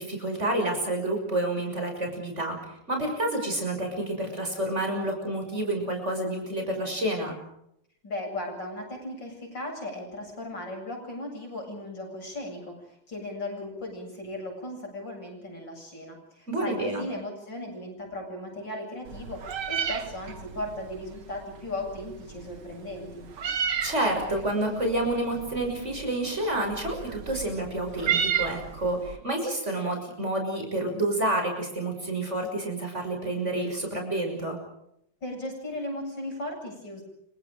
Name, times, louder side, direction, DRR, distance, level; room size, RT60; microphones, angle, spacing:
voice 1, 0.0-7.4 16.5-17.1 23.8-34.6, right 1 dB, 30° right, 3 dB, 6.7 m, -29 dB
voice 2, 8.0-23.3 35.2-37.0, left 1 dB, 55° left, 1 dB, 8.8 m, -37 dB
Meow, 19.1-29.2, right 7 dB, 75° right, 2.7 m, -33 dB
29.5 x 25.5 x 5.1 m, 0.77 s
omnidirectional pair, 2.4 m